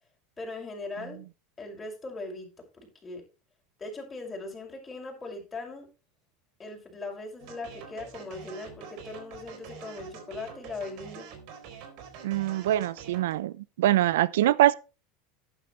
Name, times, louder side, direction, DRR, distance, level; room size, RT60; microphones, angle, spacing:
voice 1, 0.4-1.2 1.6-2.5 2.7-3.2 3.8-5.9 6.6-11.3, left 2 dB, 15° left, 5.9 m, -39 dB
sound 1, 7.4-13.3, right 7 dB, 60° right, 4.1 m, -46 dB
voice 2, 12.2-14.7, right 14 dB, 90° right, 0.6 m, -24 dB
11.5 x 10.0 x 3.3 m
supercardioid pair, 120°, 0 cm